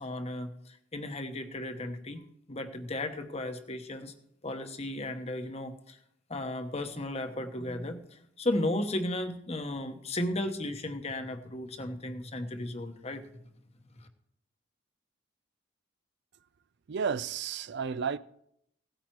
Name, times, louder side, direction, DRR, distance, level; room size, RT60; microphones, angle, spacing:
voice 1, 0.0-2.2 2.5-4.1 4.4-6.0 6.3-13.3 14.0-14.1, left 1 dB, 30° left, 1.1 m, -35 dB
voice 2, 16.9-18.2, right 6 dB, 60° right, 0.4 m, -32 dB
17.0 x 9.0 x 4.6 m
head